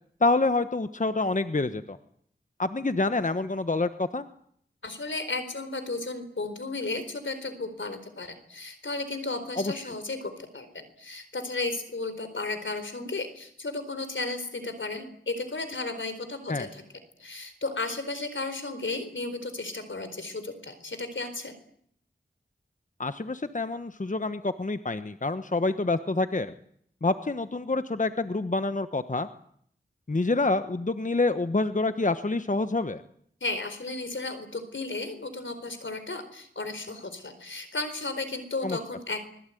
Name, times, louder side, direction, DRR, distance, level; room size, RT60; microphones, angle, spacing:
voice 1, 0.2-2.0 2.6-4.3 9.6-9.8 16.5-16.7 23.0-26.5 27.0-29.3 30.1-33.0 38.6-38.8, left 3 dB, 40° left, 10 dB, 1.2 m, -27 dB
voice 2, 4.8-16.8 17.2-21.5 33.4-39.2, left 3 dB, 85° left, 10 dB, 4.3 m, -34 dB
24.5 x 21.5 x 9.3 m, 0.65 s
wide cardioid pair, 65°, 19 cm